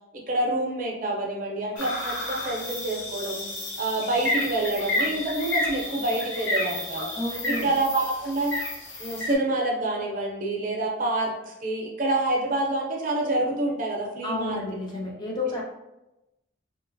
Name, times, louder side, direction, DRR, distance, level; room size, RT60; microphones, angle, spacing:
voice 1, 0.1-3.4 3.8-7.1 7.6-8.5 9.0-14.6, right 2 dB, 45° right, -1 dB, 0.6 m, -27 dB
sound 1, 1.8-9.3, left 2 dB, 90° left, 0.8 m, -31 dB
voice 2, 7.1-7.7 14.2-15.6, left 2 dB, 25° left, -3 dB, 0.4 m, -31 dB
2.9 x 2.8 x 2.6 m, 0.95 s
head